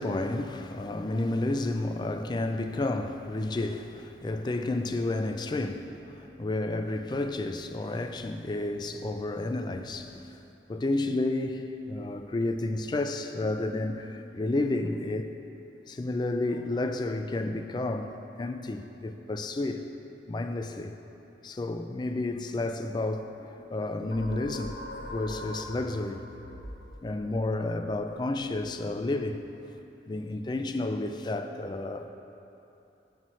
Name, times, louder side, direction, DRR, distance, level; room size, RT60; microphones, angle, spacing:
voice 1, 0.0-10.2 10.7-15.4 15.9-19.8 20.3-21.0 21.4-24.7 25.1-26.3 27.0-29.5 30.1-32.1, left 2 dB, 25° left, 7 dB, 0.3 m, -31 dB
sound 1, 24.1-29.4, left 1 dB, 50° left, 0.6 m, -43 dB
7.6 x 7.6 x 4.3 m, 2.9 s
head